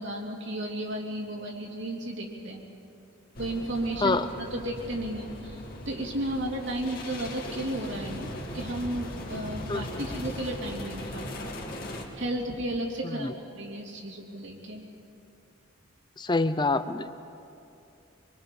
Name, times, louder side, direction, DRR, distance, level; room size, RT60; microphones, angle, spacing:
voice 1, 0.0-2.6 3.4-11.5 11.8-14.8, right 1 dB, 60° right, 0 dB, 2.8 m, -34 dB
sound 1, 3.3-12.0, left 1 dB, 45° left, 2.5 m, -39 dB
voice 2, 9.7-10.0 13.0-13.3 16.2-17.3, left 3 dB, 20° left, 11 dB, 0.6 m, -27 dB
25.5 x 23.0 x 5.4 m, 2.6 s
head